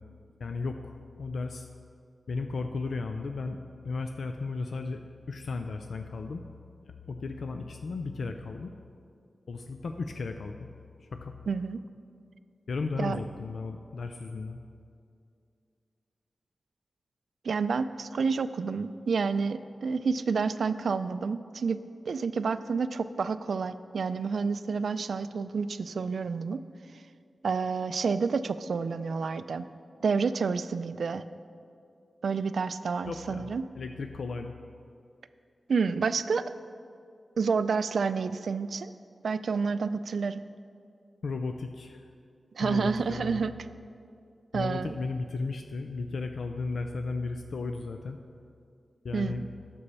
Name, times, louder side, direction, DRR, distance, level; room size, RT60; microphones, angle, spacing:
voice 1, 0.4-1.7 2.3-3.6 3.8-6.4 6.8-8.7 9.5-10.7 11.0-11.3 12.7-14.6 33.0-33.5 33.8-34.5 41.2-42.0 42.6-43.4 44.5-48.2 49.0-49.5, left 3 dB, 80° left, 5 dB, 0.4 m, -35 dB
voice 2, 11.5-11.8 13.0-13.2 17.4-21.8 22.1-26.6 27.4-29.7 30.0-31.2 32.2-33.7 35.7-36.4 37.4-38.9 39.2-40.4 42.5-43.5 44.5-44.9 49.1-49.4, right 5 dB, 80° right, 13 dB, 0.3 m, -29 dB
9.8 x 6.9 x 5.5 m, 2.4 s
wide cardioid pair, 125°, 0 cm